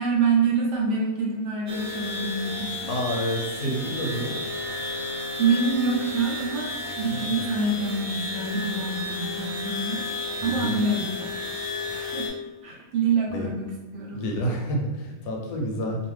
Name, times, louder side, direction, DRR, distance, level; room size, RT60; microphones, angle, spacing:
voice 1, 0.0-3.0 5.4-10.0 10.4-11.3 11.9-12.3 12.6-14.3, right 4 dB, 65° right, -2 dB, 0.8 m, -26 dB
sound 1, 1.7-12.3, left 2 dB, 25° right, 0.3 m, -32 dB
voice 2, 2.9-4.3 7.1-7.4 10.4-10.7 13.3-13.5 14.1-16.0, equal, 85° left, 0 dB, 1.1 m, -29 dB
2.6 x 2.4 x 3.1 m, 1.2 s
omnidirectional pair, 1.5 m